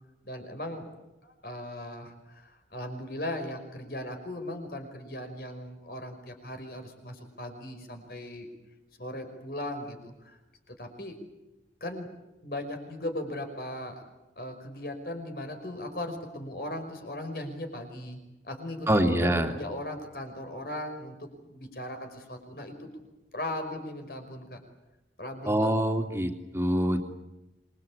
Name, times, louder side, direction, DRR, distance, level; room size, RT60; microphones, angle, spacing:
voice 1, 0.2-0.9 1.2-8.5 9.0-10.4 10.7-11.2 11.8-12.1 12.4-14.0 14.4-18.2 18.4-22.9 23.3-24.6 25.2-25.8, left 1 dB, 55° left, 6 dB, 5.4 m, -38 dB
voice 2, 18.9-19.5 25.5-27.0, right 1 dB, 15° right, 5 dB, 2.8 m, -25 dB
27.5 x 23.0 x 8.7 m, 1.0 s
head